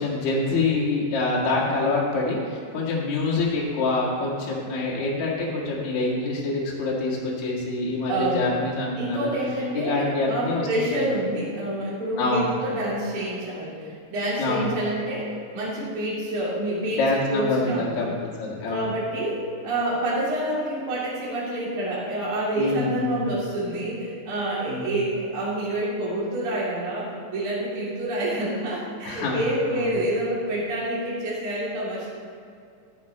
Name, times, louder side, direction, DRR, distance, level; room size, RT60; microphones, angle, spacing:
voice 1, 0.0-9.3 9.7-11.0 12.2-12.5 14.4-14.7 16.9-18.9 22.6-23.3 24.7-25.0 29.0-29.9, left 3 dB, 55° left, -4 dB, 2.5 m, -26 dB
voice 2, 8.1-8.5 9.0-17.0 17.3-18.1 18.7-32.1, right 1 dB, 35° right, -7 dB, 3.3 m, -28 dB
14.5 x 7.6 x 4.2 m, 2.4 s
omnidirectional pair, 4.9 m